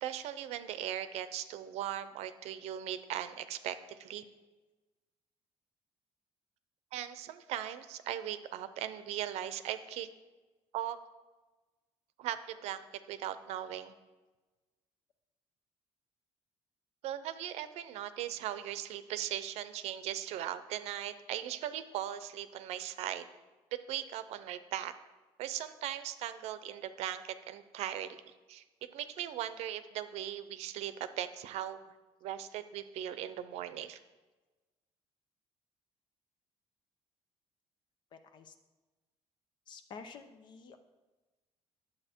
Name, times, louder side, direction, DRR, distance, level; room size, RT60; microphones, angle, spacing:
voice 1, 0.0-4.2 6.9-10.1 10.7-11.0 12.2-13.9 17.0-23.3 23.9-24.9 25.4-28.2 28.5-28.6 28.9-31.8 32.2-34.0, right 11 dB, 85° right, 12 dB, 0.6 m, -39 dB
voice 2, 38.1-38.5 39.7-40.8, left 5 dB, 45° left, 7 dB, 0.8 m, -50 dB
11.0 x 7.7 x 4.5 m, 1.2 s
cardioid pair, 170°, 11 cm